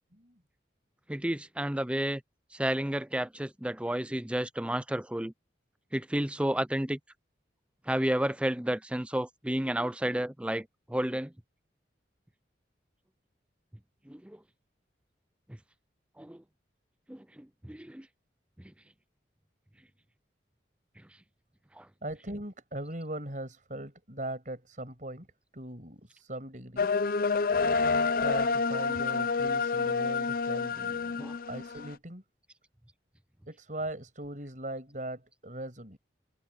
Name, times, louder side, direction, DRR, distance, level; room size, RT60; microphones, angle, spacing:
voice 1, 1.1-2.2 2.5-5.3 5.9-7.0 7.9-11.3 14.1-14.4 16.2-16.4 17.1-18.1 18.6-18.7 21.8-21.9 31.2-31.4, right 1 dB, 5° right, 0.5 m, -31 dB
voice 2, 22.0-25.3 25.5-26.9 28.2-32.2 33.5-36.0, right 1 dB, 45° right, 6.4 m, -40 dB
sound 1, 26.8-31.9, left 4 dB, 50° left, 0.6 m, -28 dB
head